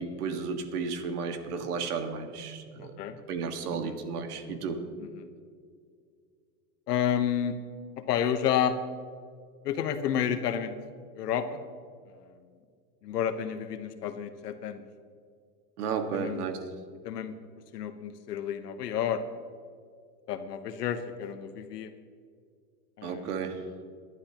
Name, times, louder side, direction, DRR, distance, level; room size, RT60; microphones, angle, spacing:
voice 1, 0.0-2.9 3.3-4.8 15.8-16.6 23.0-23.5, right 5 dB, 75° right, 6 dB, 1.8 m, -33 dB
voice 2, 2.8-3.2 3.7-4.0 5.0-5.3 6.9-7.5 8.1-8.7 9.6-10.7 11.1-11.5 12.1-12.2 13.0-14.8 16.1-16.5 17.0-17.3 17.7-19.2 20.3-21.9 23.0-23.3, left 9 dB, 90° left, 8 dB, 1.2 m, -30 dB
24.5 x 11.5 x 3.0 m, 2.1 s
supercardioid pair, 150°, 46 cm